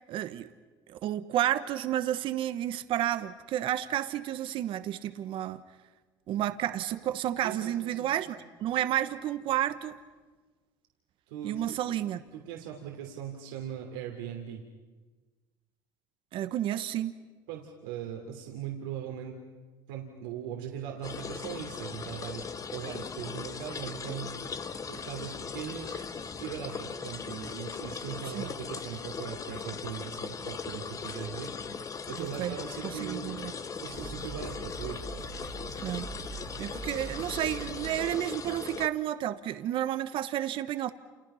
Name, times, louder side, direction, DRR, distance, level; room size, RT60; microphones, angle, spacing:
voice 1, 0.1-0.5 0.9-5.6 6.3-10.0 11.4-12.2 16.3-17.1 28.3-28.5 32.2-32.5 32.8-33.5 35.8-36.1 36.6-40.9, right 12 dB, 55° right, 11 dB, 1.2 m, -31 dB
voice 2, 7.4-8.1 11.3-11.8 12.3-14.6 17.5-19.4 19.9-24.6 24.9-26.1 26.4-33.4 33.8-35.1, right 9 dB, 85° right, 1 dB, 3.1 m, -40 dB
sound 1, 21.0-38.9, left 5 dB, 30° left, 1.3 m, -39 dB
sound 2, 32.1-32.8 33.5-33.6 33.9-38.1, right 4 dB, 35° right, 2.6 m, -43 dB
30.0 x 29.0 x 5.7 m, 1.3 s
supercardioid pair, 85°, 10 cm